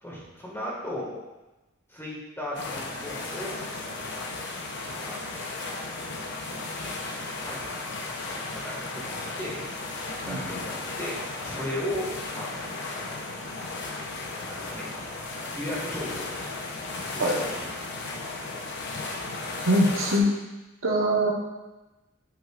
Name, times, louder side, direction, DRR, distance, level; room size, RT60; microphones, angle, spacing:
voice 1, 0.0-1.2 1.9-3.6 5.0-5.6 6.2-6.3 7.4-9.6 10.3-11.2 11.4-13.2 14.5-14.9 15.3-16.6 17.1-17.7, left 1 dB, 10° left, -5 dB, 1.9 m, -36 dB
sound 1, 2.5-20.2, left 3 dB, 60° left, 0.9 m, -35 dB
voice 2, 19.6-20.3 20.8-21.3, equal, 90° right, -1 dB, 1.3 m, -22 dB
8.6 x 5.9 x 2.5 m, 1.1 s
head